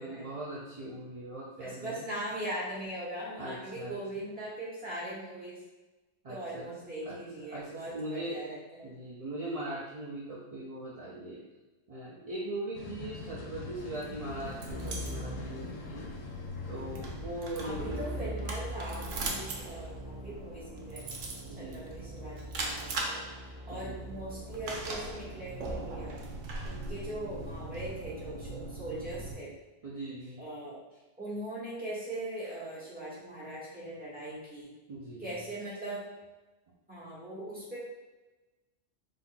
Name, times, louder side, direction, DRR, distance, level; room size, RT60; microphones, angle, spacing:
voice 1, 0.0-2.1 3.4-4.0 6.2-6.7 7.1-7.2 7.5-8.4 8.8-11.4 11.9-16.1 16.7-18.1 21.5-21.9 23.7-24.0 29.8-30.4 34.9-35.4, right 1 dB, 45° right, -6 dB, 0.4 m, -40 dB
voice 2, 1.6-5.6 6.3-8.8 17.6-21.1 21.5-23.2 23.7-26.2 26.6-29.5 30.4-30.8 31.2-34.7 35.2-36.0 36.9-37.8, right 1 dB, 5° right, -9 dB, 1.4 m, -40 dB
sound 1, 12.7-18.3, left 4 dB, 85° left, 1.0 m, -43 dB
sound 2, 13.9-29.3, right 2 dB, 85° right, 1.1 m, -41 dB
Keyboard (musical), 14.7-16.4 17.7-26.1, equal, 65° left, 1.6 m, -43 dB
4.1 x 3.7 x 2.2 m, 1.1 s
omnidirectional pair, 1.3 m